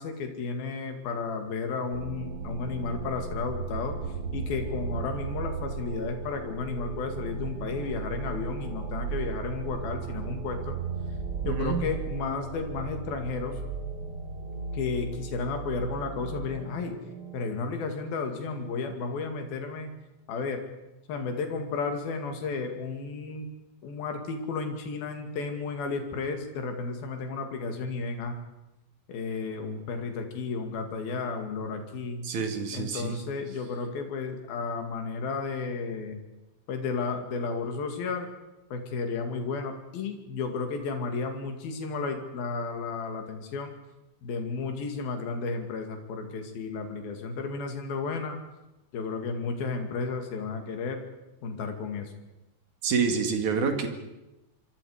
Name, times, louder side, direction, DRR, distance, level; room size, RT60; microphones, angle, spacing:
voice 1, 0.0-4.0 4.3-10.8 11.5-13.6 14.7-17.0 17.3-19.9 20.3-20.6 21.1-23.5 23.8-28.4 29.1-32.2 32.7-36.2 36.7-38.3 38.7-43.7 44.2-48.4 48.9-51.0 51.4-52.1, left 4 dB, 85° left, 5 dB, 4.0 m, -33 dB
sound 1, 1.9-17.5, right 5 dB, 40° right, 2.7 m, -36 dB
voice 2, 11.4-11.9 32.2-33.2 52.8-53.9, right 5 dB, 60° right, 5 dB, 3.4 m, -28 dB
26.0 x 23.5 x 5.0 m, 0.98 s
omnidirectional pair, 4.1 m